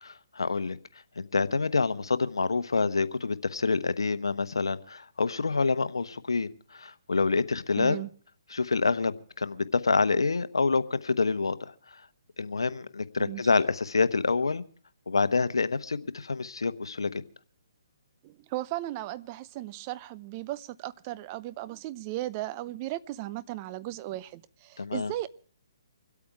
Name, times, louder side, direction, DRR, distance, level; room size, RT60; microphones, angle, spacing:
voice 1, 0.0-0.8 1.2-8.0 8.5-11.6 11.9-12.0 12.4-14.6 15.1-17.2 24.8-25.1, left 4 dB, 85° left, 1.0 m, -27 dB
voice 2, 7.8-8.1 13.2-13.4 18.2-25.3, right 16 dB, 30° right, 0.7 m, -36 dB
25.5 x 8.6 x 4.7 m
hypercardioid pair, 145°, 2 cm